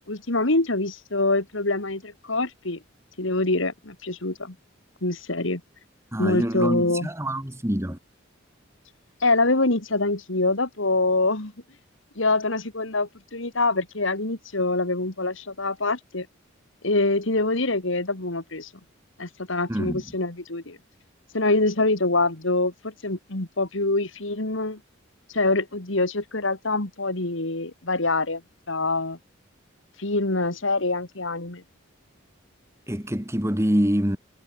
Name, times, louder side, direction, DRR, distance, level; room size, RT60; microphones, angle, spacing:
voice 1, 0.1-2.8 3.2-4.5 5.0-5.6 6.2-7.1 9.2-11.5 12.2-16.3 16.8-18.7 19.2-20.8 21.3-24.8 25.3-28.4 28.7-29.2 30.0-31.6, left 2 dB, 70° left, 2.6 m, -25 dB
voice 2, 6.1-8.0 19.7-20.1 32.9-34.2, equal, 15° right, 2.0 m, -25 dB
head